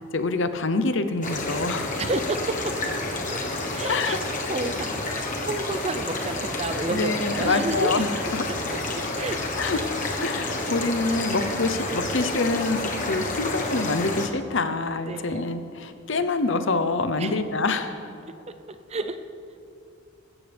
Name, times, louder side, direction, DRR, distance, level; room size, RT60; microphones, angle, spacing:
voice 1, 0.0-2.0 3.8-4.2 6.9-8.1 8.3-8.4 9.6-9.8 10.2-18.0, left 3 dB, 60° left, 9 dB, 0.8 m, -26 dB
sound 1, 1.2-14.3, left 2 dB, 35° left, 1.3 m, -29 dB
voice 2, 2.0-2.8 3.1-3.4 3.7-4.2 4.5-9.4 9.7-9.9 10.2-10.3 15.1-15.5 17.2-17.4 18.7-19.2, right 2 dB, 30° right, 9 dB, 0.6 m, -31 dB
19.5 x 16.0 x 3.5 m, 2.6 s
head